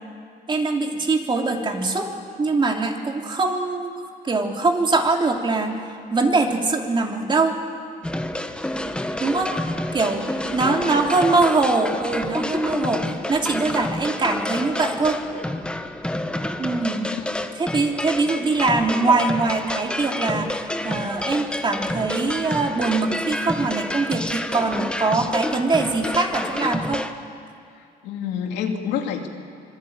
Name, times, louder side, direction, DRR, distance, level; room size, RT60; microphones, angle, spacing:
voice 1, 0.5-2.1 2.4-3.9 4.2-7.6 9.2-9.5 9.9-10.3 10.5-15.2 16.6-17.1 17.6-27.0, right 3 dB, 30° right, 2 dB, 3.1 m, -22 dB
sound 1, 8.0-27.1, left 1 dB, 5° left, 1.3 m, -29 dB
voice 2, 10.4-11.2 17.1-17.4 27.7-29.3, left 7 dB, 90° left, 3 dB, 2.7 m, -30 dB
25.0 x 22.5 x 8.9 m, 2.3 s
cardioid pair, 110°, 17 cm